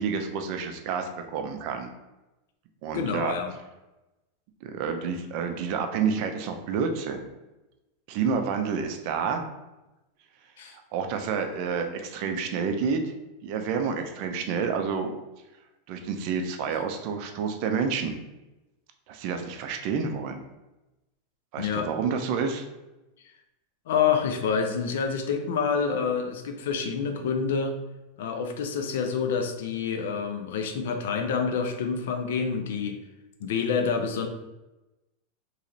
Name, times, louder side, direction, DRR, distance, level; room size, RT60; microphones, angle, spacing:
voice 1, 0.0-1.9 2.8-3.3 4.6-7.3 8.1-9.4 10.7-13.0 13.4-15.1 15.9-18.1 19.1-20.4 21.5-22.6, right 6 dB, 55° right, 5 dB, 0.5 m, -29 dB
voice 2, 2.9-3.5 10.6-10.8 21.6-21.9 23.9-27.8 28.2-33.0 33.4-34.3, left 6 dB, 80° left, 6 dB, 0.6 m, -27 dB
3.1 x 2.8 x 3.8 m, 1.0 s
supercardioid pair, 135°, 0 cm